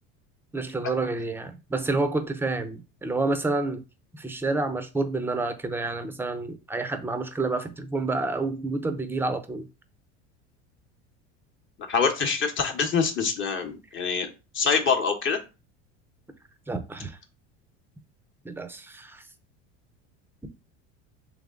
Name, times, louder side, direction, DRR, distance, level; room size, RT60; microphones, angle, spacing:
voice 1, 0.5-3.8 4.1-9.6 16.7-17.2 18.4-19.2, right 3 dB, 5° right, 0.5 m, -29 dB
voice 2, 11.9-14.3 14.5-15.4, left 5 dB, 35° left, 0.9 m, -25 dB
3.5 x 3.2 x 3.7 m
supercardioid pair, 105°, 34 cm